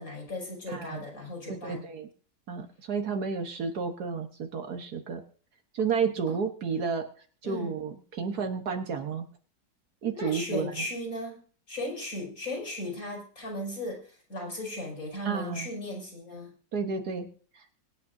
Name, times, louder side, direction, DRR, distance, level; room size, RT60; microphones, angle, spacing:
voice 1, 0.0-1.8 6.3-6.4 7.4-7.8 10.1-11.4 11.7-16.5, left 1 dB, 50° left, -1 dB, 5.7 m, -36 dB
voice 2, 0.7-1.0 1.5-2.1 2.5-5.2 5.7-7.1 7.4-9.3 10.0-10.8 15.3-15.7 16.7-17.3 17.6-17.7, right 5 dB, 65° right, 5 dB, 1.7 m, -31 dB
24.0 x 9.3 x 2.7 m, 0.42 s
omnidirectional pair, 1.9 m